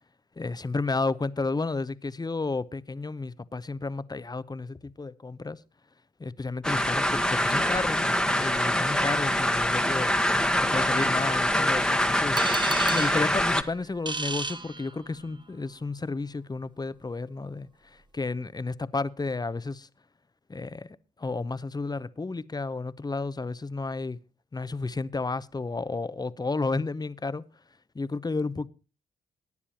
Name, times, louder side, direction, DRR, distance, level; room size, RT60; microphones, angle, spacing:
voice 1, 0.4-5.6 6.2-10.2 10.6-12.4 12.9-19.9 20.5-20.9 21.2-24.2 24.5-27.4 27.9-28.7, left 3 dB, 20° left, 0.8 m, -32 dB
sound 1, 6.6-13.6, equal, 5° left, 1.2 m, -24 dB
sound 2, 12.4-15.4, right 3 dB, 25° right, 1.0 m, -34 dB
17.5 x 9.7 x 2.9 m
hypercardioid pair, 45°, 18 cm